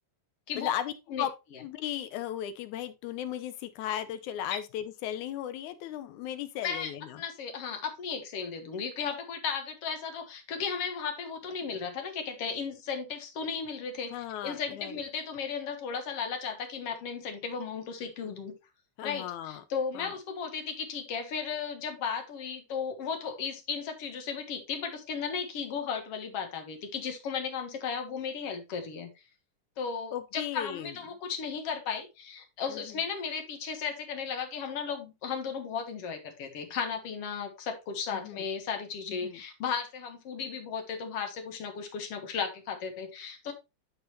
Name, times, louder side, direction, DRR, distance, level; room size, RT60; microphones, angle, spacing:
voice 1, 0.6-1.3 1.6-7.2 14.1-15.0 19.0-19.6 19.9-20.1 30.1-30.9 32.7-33.0 38.1-38.5 39.1-39.4, left 11 dB, 80° left, 2.1 m, -36 dB
voice 2, 7.2-18.5 19.0-29.1 29.8-43.5, left 6 dB, 55° left, 2.2 m, -35 dB
11.5 x 4.0 x 3.0 m
omnidirectional pair, 3.4 m